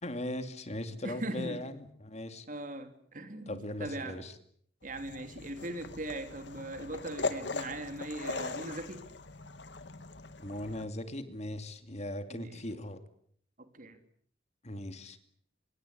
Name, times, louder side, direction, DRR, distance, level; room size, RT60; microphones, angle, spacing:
voice 1, 0.0-2.5 3.5-4.3 10.4-13.0 14.6-15.2, left 1 dB, 35° left, 9 dB, 2.6 m, -39 dB
voice 2, 1.0-1.6 2.5-4.2 4.8-9.0 12.3-12.7 13.6-14.0, right 1 dB, 45° right, 8 dB, 3.4 m, -40 dB
sound 1, 4.8-10.9, left 3 dB, 70° left, 2.1 m, -40 dB
26.0 x 23.5 x 8.7 m, 0.63 s
head